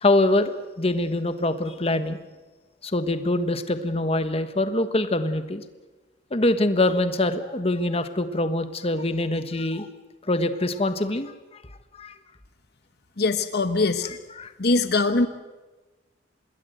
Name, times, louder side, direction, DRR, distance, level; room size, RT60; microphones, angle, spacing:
voice 1, 0.0-2.2 2.8-5.6 6.3-9.9 10.3-11.3 11.9-12.1 14.4-14.5, left 2 dB, 35° left, 10 dB, 1.3 m, -24 dB
voice 2, 13.2-14.2 14.6-15.3, left 3 dB, 60° left, 10 dB, 1.1 m, -22 dB
26.0 x 21.0 x 8.0 m, 1.2 s
head